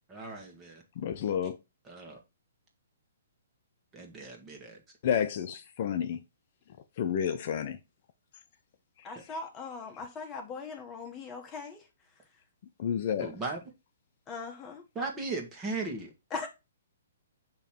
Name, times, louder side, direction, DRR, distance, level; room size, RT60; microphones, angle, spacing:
voice 1, 0.1-0.8 1.8-2.2 3.9-4.8 13.2-13.6 14.9-16.1, right 3 dB, 20° right, 1.7 m, -37 dB
voice 2, 1.0-1.6 5.0-6.2 7.0-7.8 12.8-13.3, left 8 dB, 50° left, 0.6 m, -30 dB
voice 3, 9.0-11.9 14.3-14.8 16.3-16.5, left 4 dB, 20° left, 1.4 m, -40 dB
6.8 x 3.1 x 4.4 m
hypercardioid pair, 135°, 0 cm